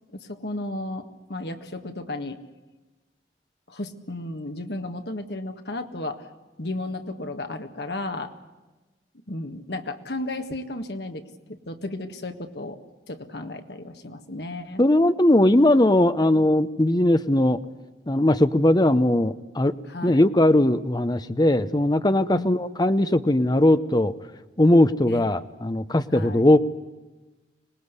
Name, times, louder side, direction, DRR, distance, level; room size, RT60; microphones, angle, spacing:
voice 1, 0.1-2.4 3.7-6.3 6.6-8.3 9.3-12.8 13.1-14.8 19.9-20.2 22.3-22.5 25.1-25.2 26.1-26.4, left 2 dB, 65° left, 6 dB, 1.8 m, -34 dB
voice 2, 14.8-17.6 18.1-19.7 20.0-24.1 24.6-26.6, left 1 dB, 20° left, 11 dB, 0.8 m, -19 dB
25.0 x 19.0 x 8.2 m, 1.2 s
head